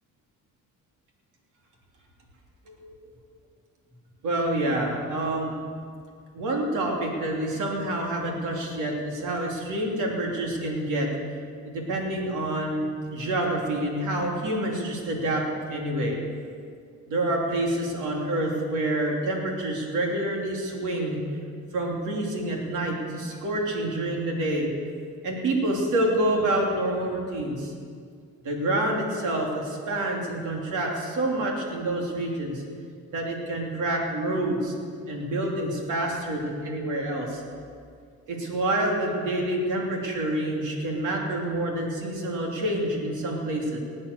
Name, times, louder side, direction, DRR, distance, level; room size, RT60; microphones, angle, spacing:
voice 1, 2.7-3.0 4.2-5.5 6.3-11.1 11.6-16.2 17.1-21.2 21.7-24.7 25.2-27.7 28.4-32.6 33.1-34.8 35.1-37.4 38.3-43.8, right 1 dB, 85° right, 0 dB, 3.2 m, -27 dB
19.5 x 8.7 x 6.8 m, 2.1 s
cardioid pair, 90°, 30 cm